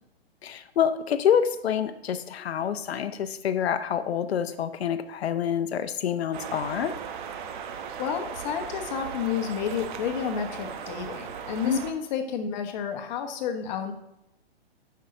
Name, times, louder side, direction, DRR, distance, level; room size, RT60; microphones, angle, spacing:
voice 1, 0.4-7.0 11.6-11.8, left 8 dB, 75° left, 10 dB, 0.7 m, -27 dB
sound 1, 6.3-11.9, right 7 dB, 50° right, 0.9 m, -37 dB
voice 2, 8.0-13.9, left 7 dB, 45° left, 5 dB, 1.2 m, -31 dB
9.2 x 5.7 x 3.9 m, 0.83 s
hypercardioid pair, 130°, 32 cm